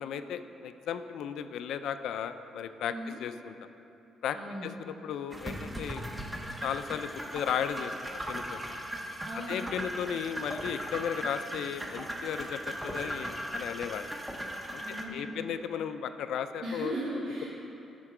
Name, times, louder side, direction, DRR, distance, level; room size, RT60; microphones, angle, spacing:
voice 1, 0.0-2.9 3.2-3.5 4.2-4.4 4.6-6.0 6.6-7.9 8.3-8.6 9.5-14.1 14.7-16.9, left 8 dB, 80° left, 10 dB, 0.4 m, -35 dB
voice 2, 2.9-3.2 4.3-4.7 9.2-9.7 14.8-15.5 16.6-17.5, right 1 dB, 70° right, -10 dB, 1.9 m, -37 dB
sound 1, 5.3-15.1, equal, 10° right, 0.6 m, -38 dB
12.0 x 4.5 x 4.9 m, 2.8 s
cardioid pair, 145°, 0 cm